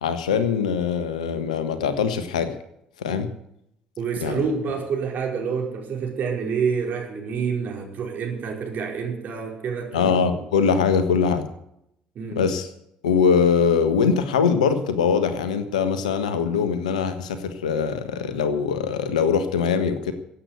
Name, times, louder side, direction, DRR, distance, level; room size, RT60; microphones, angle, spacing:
voice 1, 0.0-2.5 3.0-3.3 4.2-4.4 9.9-11.5 12.3-12.7 13.0-20.1, left 6 dB, 80° left, 10 dB, 1.4 m, -22 dB
voice 2, 4.0-10.2 12.1-12.4, right 6 dB, 50° right, 0 dB, 5.2 m, -28 dB
16.5 x 8.5 x 8.2 m, 0.77 s
hypercardioid pair, 55°, 4 cm